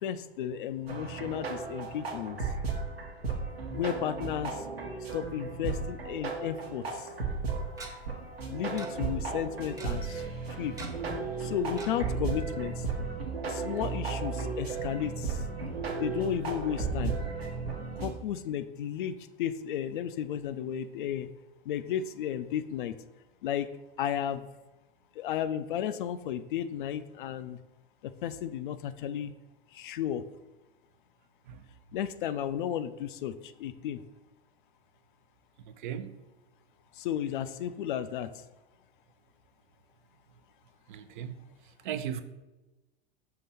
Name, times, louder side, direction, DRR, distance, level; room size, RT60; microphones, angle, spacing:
voice 1, 0.0-2.5 3.7-4.7 5.1-7.1 8.5-10.7 11.4-12.8 13.4-15.4 16.0-17.1 18.0-21.3 21.7-22.9 23.4-23.7 24.0-24.4 25.2-27.6 28.0-29.3 29.7-30.2 31.9-34.0 36.9-38.3, left 10 dB, 55° left, 0.4 m, -33 dB
sound 1, 0.9-18.1, right 4 dB, 75° right, 1.0 m, -35 dB
Tick-tock, 6.9-7.0 7.8-7.9 8.8-8.9 9.1-9.2 9.5-9.9 10.8-11.2 11.8-11.9 12.3-12.4 12.7-12.8, right 2 dB, 10° right, 0.8 m, -43 dB
voice 2, 35.6-36.2 40.9-41.4 41.8-42.2, right 9 dB, 55° right, 0.5 m, -37 dB
5.8 x 2.9 x 5.5 m
figure-of-eight pair, 85°, 31 cm